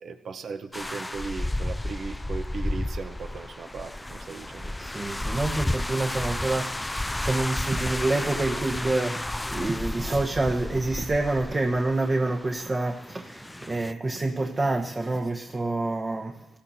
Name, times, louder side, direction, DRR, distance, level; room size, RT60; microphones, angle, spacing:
voice 1, 0.0-4.7, right 4 dB, 70° right, 0.9 m, -37 dB
sound 1, 0.7-13.9, left 1 dB, 15° left, 0.4 m, -32 dB
voice 2, 4.8-16.4, right 2 dB, 40° right, 1.1 m, -27 dB
17.0 x 16.5 x 2.8 m
hypercardioid pair, 40°, 0 cm